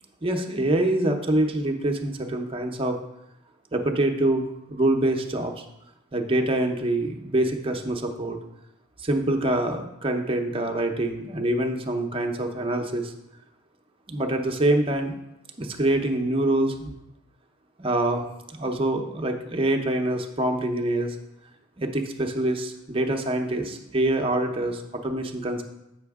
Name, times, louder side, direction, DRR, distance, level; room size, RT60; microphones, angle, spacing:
voice 1, 0.2-3.0 3.7-5.6 6.1-8.4 9.0-13.1 14.1-15.2 15.6-16.9 17.8-21.2 21.8-25.6, right 1 dB, 25° right, 4 dB, 0.6 m, -25 dB
7.8 x 5.8 x 3.5 m, 0.88 s
head